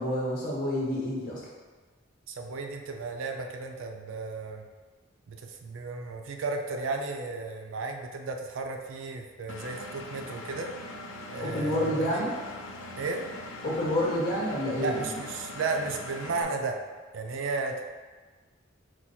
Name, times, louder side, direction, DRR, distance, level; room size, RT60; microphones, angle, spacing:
voice 1, 0.0-1.4 11.4-12.3 13.6-15.1, left 1 dB, 45° left, -6 dB, 1.3 m, -28 dB
voice 2, 2.3-4.6 5.3-10.7 11.3-12.2 13.0-13.3 14.7-16.8 17.1-17.8, right 3 dB, 70° right, 3 dB, 0.4 m, -34 dB
Engine, 9.5-16.4, left 1 dB, 90° left, 0.5 m, -41 dB
4.5 x 2.3 x 4.2 m, 1.4 s
head